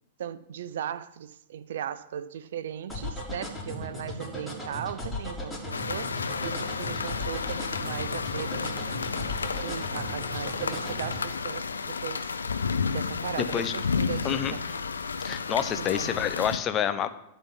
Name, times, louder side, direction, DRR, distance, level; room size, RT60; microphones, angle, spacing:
voice 1, 0.2-6.1 6.4-9.0 9.6-12.3 12.9-14.6 15.6-16.2, right 9 dB, 65° right, 0.5 m, -37 dB
sound 1, 2.9-11.2, left 1 dB, 5° left, 3.3 m, -36 dB
sound 2, 5.7-16.6, left 5 dB, 80° left, 0.6 m, -32 dB
voice 2, 15.2-17.1, left 9 dB, 30° left, 0.8 m, -28 dB
12.5 x 4.2 x 7.4 m
figure-of-eight pair, 100°, 0 cm